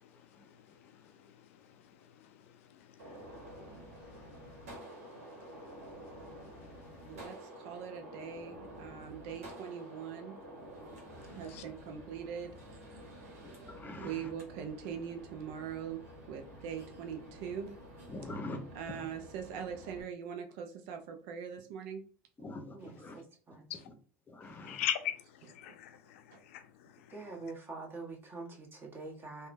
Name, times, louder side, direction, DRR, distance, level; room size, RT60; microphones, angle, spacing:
Gunshot gunfire, 3.0-20.0, equal, 85° right, 1.0 m, -50 dB
voice 1, 7.1-10.4 11.3-12.5 14.0-17.7 18.7-22.0 26.3-26.4, right 8 dB, 65° right, 0.5 m, -42 dB
voice 2, 13.4-14.3 18.1-18.6 18.9-19.0 22.4-23.2 23.9-24.0 24.3-24.8, left 2 dB, 25° left, 0.7 m, -44 dB
voice 3, 22.7-23.7 27.1-29.5, right 3 dB, 35° right, 1.2 m, -45 dB
voice 4, 24.6-25.2 25.5-26.6, left 11 dB, 75° left, 0.3 m, -37 dB
3.5 x 2.2 x 2.5 m
hypercardioid pair, 75°, 7 cm